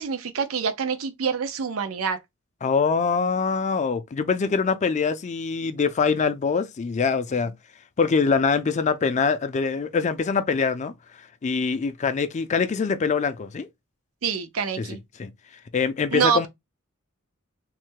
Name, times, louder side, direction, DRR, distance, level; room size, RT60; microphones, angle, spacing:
voice 1, 0.0-2.2 14.2-15.0 16.1-16.5, right 6 dB, 85° right, 0.5 m, -26 dB
voice 2, 2.6-7.5 8.0-10.9 11.4-13.7 14.8-15.3 15.7-16.5, left 5 dB, 35° left, 0.4 m, -24 dB
3.2 x 2.1 x 3.0 m
head